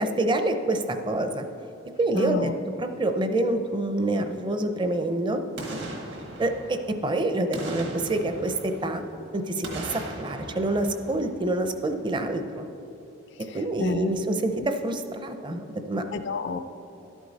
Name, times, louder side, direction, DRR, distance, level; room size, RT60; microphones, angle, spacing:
voice 1, 0.0-1.4 2.0-2.5 2.8-5.4 6.4-9.0 9.3-12.7 13.5-16.1, right 1 dB, 25° right, 7 dB, 0.5 m, -27 dB
voice 2, 2.1-2.5 13.8-14.3 16.1-16.6, left 3 dB, 60° left, 9 dB, 0.4 m, -29 dB
Boom, 5.6-7.1 7.5-9.2 9.6-11.9 12.2-12.3, right 1 dB, 60° right, 1.3 m, -39 dB
12.0 x 8.2 x 4.0 m, 2.8 s
head